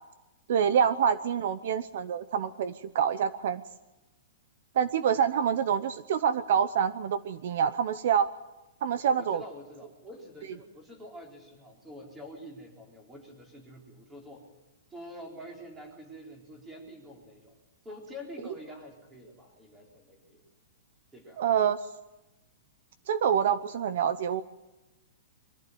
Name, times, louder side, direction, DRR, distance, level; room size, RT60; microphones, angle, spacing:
voice 1, 0.5-3.6 4.7-8.3 8.8-9.4 21.4-21.8 23.1-24.4, right 8 dB, 50° right, 14 dB, 0.9 m, -26 dB
voice 2, 9.2-14.4 14.9-17.5 17.8-20.4 21.1-21.4, equal, 10° right, 1 dB, 4.2 m, -46 dB
24.0 x 15.0 x 9.5 m, 1.1 s
hypercardioid pair, 175°, 0 cm